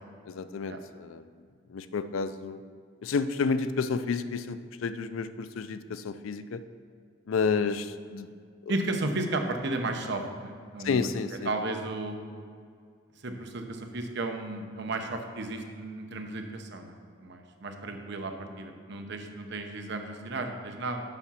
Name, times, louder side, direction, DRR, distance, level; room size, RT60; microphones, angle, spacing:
voice 1, 0.3-1.3 1.7-2.6 3.0-6.6 7.3-8.3 10.8-11.5, left 5 dB, 85° left, 12 dB, 0.4 m, -30 dB
voice 2, 8.7-11.1 11.4-12.2 13.2-16.9 17.2-21.0, right 2 dB, 60° right, 5 dB, 0.8 m, -34 dB
6.9 x 5.9 x 5.6 m, 2.2 s
head